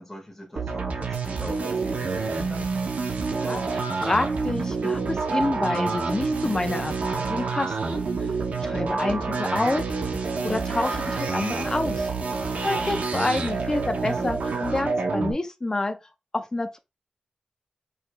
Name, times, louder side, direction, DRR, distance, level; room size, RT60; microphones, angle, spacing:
voice 1, 0.0-2.7 12.6-13.1, left 1 dB, 10° left, 1.6 m, -41 dB
sound 1, 0.6-15.3, right 4 dB, 80° right, 0.7 m, -28 dB
voice 2, 3.3-8.0 8.6-10.0 10.4-12.1 12.6-16.0 16.3-16.8, left 2 dB, 25° left, 0.6 m, -28 dB
4.8 x 3.2 x 2.2 m
wide cardioid pair, 135°, 3 cm